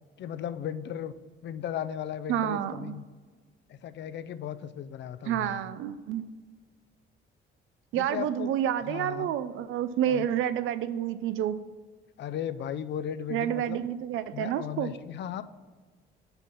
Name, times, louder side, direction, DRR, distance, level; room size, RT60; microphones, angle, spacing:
voice 1, 0.2-1.1 1.4-3.0 3.7-5.6 7.9-8.5 8.9-9.3 10.1-10.3 12.2-13.8 14.3-15.4, left 9 dB, 65° left, 13 dB, 0.5 m, -36 dB
voice 2, 2.3-3.0 5.3-6.2 7.9-11.6 13.3-14.9, right 10 dB, 85° right, 13 dB, 0.5 m, -29 dB
5.7 x 5.4 x 5.7 m, 1.4 s
cardioid pair, 90°, 20 cm